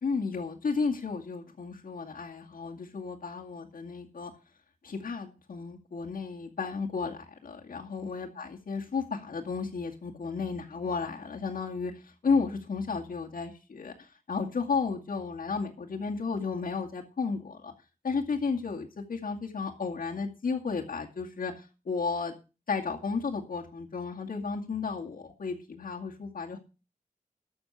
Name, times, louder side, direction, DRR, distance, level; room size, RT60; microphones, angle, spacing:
voice 1, 0.0-4.3 4.8-11.9 12.2-17.7 18.0-21.5 21.9-22.3 22.7-26.6, left 4 dB, 80° left, -1 dB, 2.2 m, -33 dB
13.0 x 6.5 x 6.9 m, 0.32 s
wide cardioid pair, 115°, 15 cm